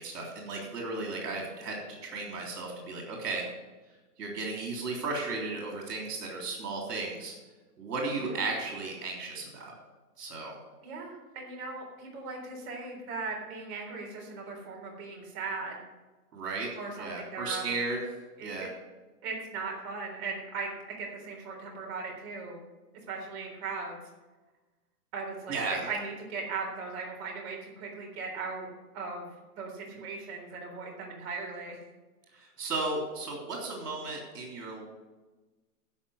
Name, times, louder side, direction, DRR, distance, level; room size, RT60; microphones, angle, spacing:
voice 1, 0.0-3.4 4.2-7.4 7.8-9.7 10.2-10.6 16.3-16.7 17.0-18.0 18.4-18.7 25.5-25.9 32.3-34.8, right 3 dB, 80° right, -1 dB, 3.6 m, -35 dB
voice 2, 10.8-15.8 16.8-17.6 18.4-18.7 19.2-20.7 21.0-22.6 23.1-24.0 25.1-28.7 28.9-29.3 29.6-31.8, right 4 dB, 40° right, -1 dB, 3.8 m, -38 dB
11.5 x 6.1 x 8.3 m, 1.2 s
hypercardioid pair, 150°, 47 cm